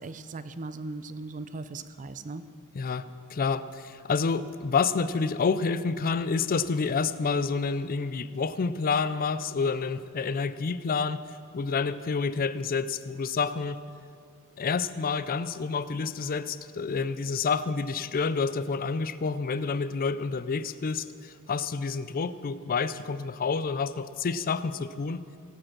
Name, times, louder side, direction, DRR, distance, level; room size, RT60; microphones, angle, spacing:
voice 1, 0.0-2.4, right 3 dB, 35° right, 12 dB, 0.5 m, -38 dB
voice 2, 2.7-11.2 11.5-13.8 14.6-25.2, left 5 dB, 40° left, 15 dB, 0.4 m, -29 dB
18.0 x 7.8 x 6.0 m, 2.5 s
head